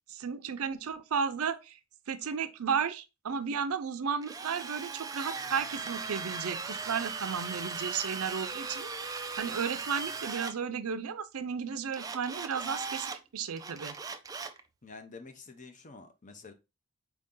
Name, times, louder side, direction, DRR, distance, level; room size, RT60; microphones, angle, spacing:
voice 1, 0.1-1.8 2.1-14.0, right 6 dB, 90° right, 0.5 m, -34 dB
Drill, 4.2-10.5 11.9-13.2 13.6-14.6, right 4 dB, 15° right, 0.3 m, -38 dB
voice 2, 14.8-16.5, left 4 dB, 35° left, 0.6 m, -48 dB
4.6 x 2.7 x 3.6 m
head